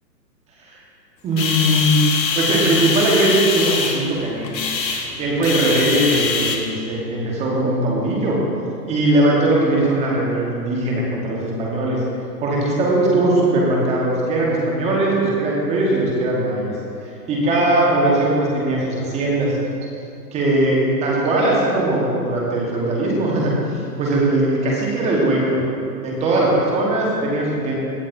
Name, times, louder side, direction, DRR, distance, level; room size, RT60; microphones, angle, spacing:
voice 1, 1.2-2.0 2.3-4.5 5.2-8.4 8.9-12.0 12.4-16.7 17.3-19.5 20.3-23.5 24.0-25.6 26.0-27.7, right 1 dB, 15° right, -3 dB, 1.2 m, -19 dB
sound 1, 1.3-6.6, left 5 dB, 80° left, 1.3 m, -23 dB
16.0 x 7.5 x 2.6 m, 2.5 s
hypercardioid pair, 145°, 50 cm